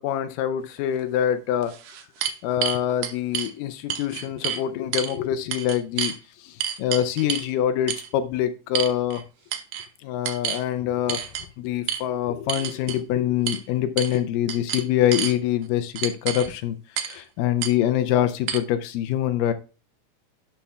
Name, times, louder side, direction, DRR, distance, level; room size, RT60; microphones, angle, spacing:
voice 1, 0.0-1.8 2.4-9.2 10.0-11.3 11.6-19.5, left 11 dB, 85° left, 2.2 m, -25 dB
sound 1, 1.0-1.1 1.6-3.5 3.9-4.6 4.9-5.2 5.5-6.2 6.6-7.5 7.9-8.1 8.8-9.2 9.5-9.9 10.3-10.6 11.1-11.5 11.9-12.0 12.5-13.0 13.5-13.6 14.0-14.2 14.5-15.4 16.0-16.5 17.0-17.2 17.6-17.7 18.5-18.6, right 9 dB, 80° right, 2.4 m, -29 dB
11.5 x 6.8 x 2.3 m
omnidirectional pair, 3.7 m